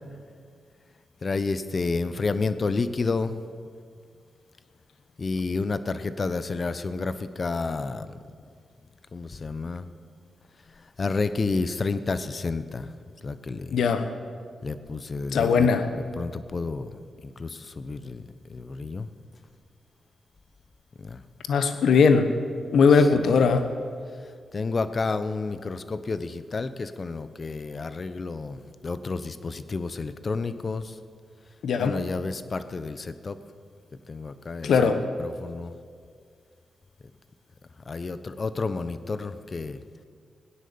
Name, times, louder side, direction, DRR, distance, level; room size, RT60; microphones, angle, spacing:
voice 1, 1.2-3.4 5.2-8.2 9.1-9.9 10.8-12.9 13.2-13.8 14.6-19.1 21.0-21.2 23.2-23.5 24.5-31.0 31.8-33.4 34.1-35.8 37.9-39.8, left 3 dB, 50° left, 13 dB, 0.9 m, -30 dB
voice 2, 13.7-14.1 15.3-15.8 21.5-22.3 22.7-23.6 31.6-31.9 34.6-35.0, left 5 dB, 75° left, 9 dB, 1.1 m, -19 dB
17.5 x 10.0 x 7.0 m, 2.1 s
supercardioid pair, 45°, 0 cm